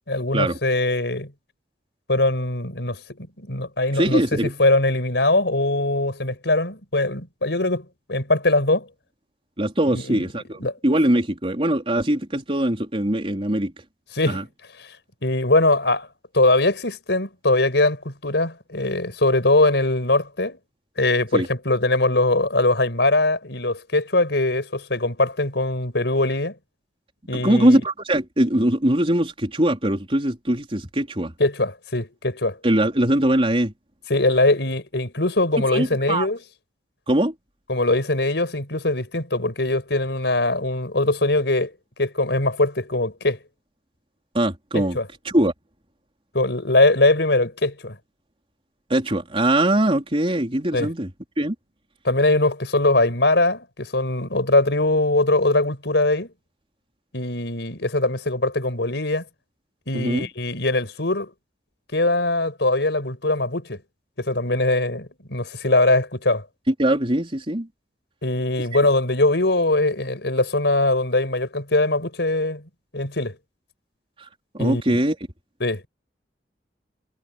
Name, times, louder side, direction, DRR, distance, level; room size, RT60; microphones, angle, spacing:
voice 1, 0.1-1.3 2.1-8.9 9.8-10.3 10.6-10.7 14.1-14.4 14.8-15.0 15.2-16.1 16.3-20.6 21.0-26.5 27.3-27.8 31.4-32.6 34.1-36.4 37.7-41.7 42.0-43.4 44.7-45.1 46.3-48.0 50.7-50.9 52.0-56.3 57.1-59.2 59.9-61.3 61.9-63.8 64.2-66.4 68.2-72.6 72.9-73.4 74.6-75.0 75.6-75.9, left 2 dB, 70° left, 5.9 m, -21 dB
voice 2, 3.9-4.5 9.6-13.7 14.3-14.4 21.3-21.5 27.3-31.3 32.6-33.7 35.7-36.3 37.1-37.3 44.3-45.0 45.3-45.5 48.9-51.1 51.4-51.5 59.9-60.3 66.7-67.7 74.2-74.3 74.5-75.2, right 1 dB, 30° right, 4.0 m, -21 dB
head